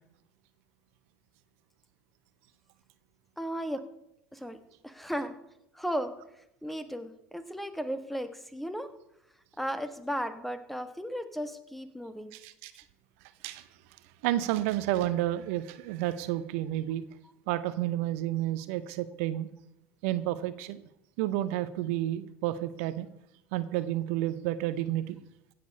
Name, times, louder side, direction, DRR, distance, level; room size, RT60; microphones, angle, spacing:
voice 1, 3.4-3.8 4.3-4.6 4.8-5.3 5.7-6.1 6.6-8.9 9.6-12.3, equal, ahead, 10 dB, 1.3 m, -35 dB
voice 2, 12.3-12.8 13.4-13.7 14.2-17.0 17.5-19.5 20.0-20.8 21.2-23.1 23.5-25.2, right 14 dB, 70° right, 14 dB, 0.6 m, -31 dB
16.5 x 6.8 x 5.4 m, 0.82 s
hypercardioid pair, 80°, 8 cm